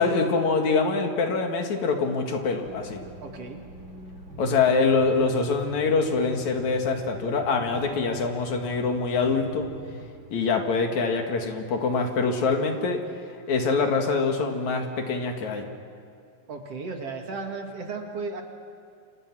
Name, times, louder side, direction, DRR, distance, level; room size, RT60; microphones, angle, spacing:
voice 1, 0.0-3.0 4.4-9.7 10.3-13.0 13.5-15.7, left 4 dB, 70° left, 4 dB, 3.3 m, -24 dB
sound 1, 2.6-10.1, right 1 dB, 35° right, 4.4 m, -42 dB
voice 2, 3.2-3.6 16.5-18.4, right 4 dB, 55° right, 3 dB, 2.8 m, -35 dB
29.0 x 26.5 x 6.2 m, 2.3 s
omnidirectional pair, 3.5 m